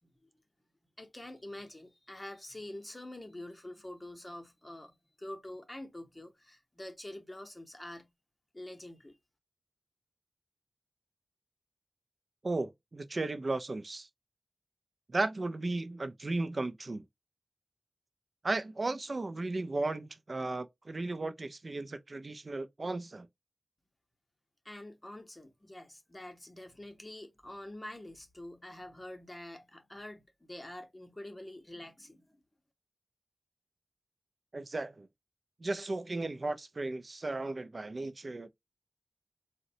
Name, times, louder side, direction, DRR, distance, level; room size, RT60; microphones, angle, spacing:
voice 1, 1.0-8.1 8.5-9.2 24.6-32.4, left 1 dB, 20° left, 0.8 m, -46 dB
voice 2, 12.4-14.1 15.1-17.0 18.4-23.3 34.5-35.1 35.6-38.5, right 2 dB, 45° right, 0.4 m, -35 dB
3.8 x 2.1 x 2.6 m
wide cardioid pair, 85°, 0 cm